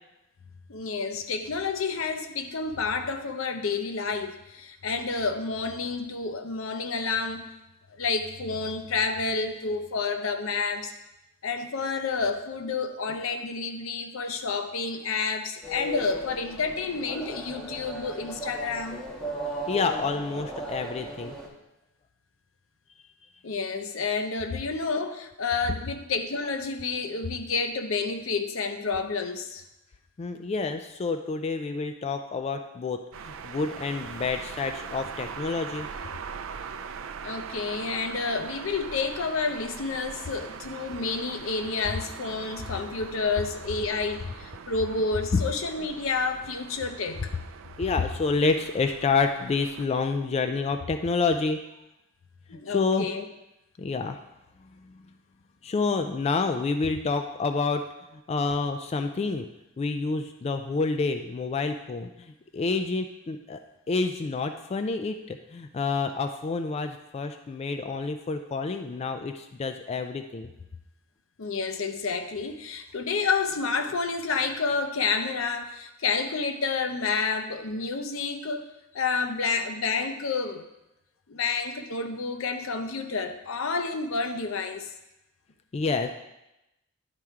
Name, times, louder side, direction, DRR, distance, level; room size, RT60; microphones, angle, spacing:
voice 1, 0.7-7.5 8.0-10.9 11.4-19.0 23.4-29.6 37.2-47.3 52.5-53.2 71.4-78.7 78.9-80.6 81.3-84.9, left 4 dB, 80° left, 6 dB, 0.7 m, -29 dB
sound 1, 15.6-21.5, right 1 dB, 5° left, 1.3 m, -36 dB
voice 2, 19.7-21.3 30.2-36.0 45.3-45.4 47.8-51.6 52.5-53.1 53.8-54.2 54.8-54.9 55.6-57.8 58.1-59.5 59.8-63.6 63.9-70.5 85.7-86.1, left 4 dB, 30° left, 7 dB, 0.3 m, -28 dB
sound 2, 33.1-49.9, right 6 dB, 70° right, 0.4 m, -41 dB
10.5 x 4.5 x 3.6 m, 0.92 s
head